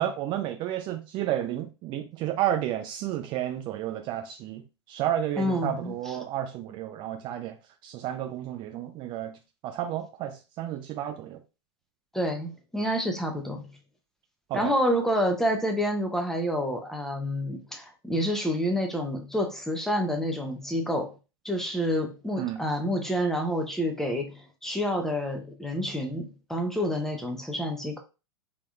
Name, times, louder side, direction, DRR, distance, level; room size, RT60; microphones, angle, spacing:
voice 1, 0.0-7.6 7.8-9.4 9.6-11.4 14.5-14.7 22.4-22.6, right 11 dB, 35° right, 0.5 m, -31 dB
voice 2, 5.4-6.1 12.1-13.6 14.5-21.1 21.4-28.0, equal, 5° left, 0.7 m, -28 dB
3.4 x 2.9 x 2.4 m
hypercardioid pair, 100°, 14 cm